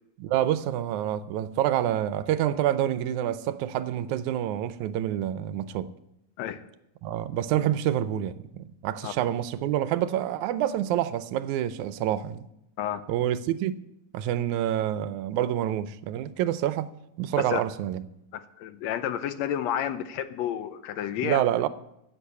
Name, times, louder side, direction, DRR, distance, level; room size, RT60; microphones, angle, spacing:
voice 1, 0.2-5.9 7.0-12.4 13.1-13.7 14.1-16.9 17.2-18.0 21.2-21.7, right 11 dB, 85° right, 2.1 m, -27 dB
voice 2, 18.3-21.4, left 10 dB, 75° left, 1.9 m, -31 dB
10.0 x 8.7 x 8.3 m
omnidirectional pair, 3.3 m